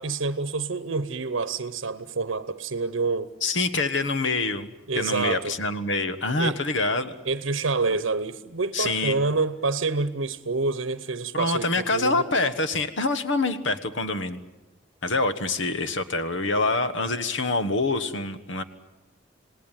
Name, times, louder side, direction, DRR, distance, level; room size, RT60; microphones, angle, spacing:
voice 1, 0.0-3.3 4.9-5.5 6.4-6.6 7.2-12.2, right 4 dB, 80° right, 0.9 m, -27 dB
voice 2, 3.4-7.1 8.7-9.2 11.3-14.4 15.0-18.6, left 3 dB, 65° left, 1.4 m, -26 dB
27.5 x 19.0 x 9.2 m
head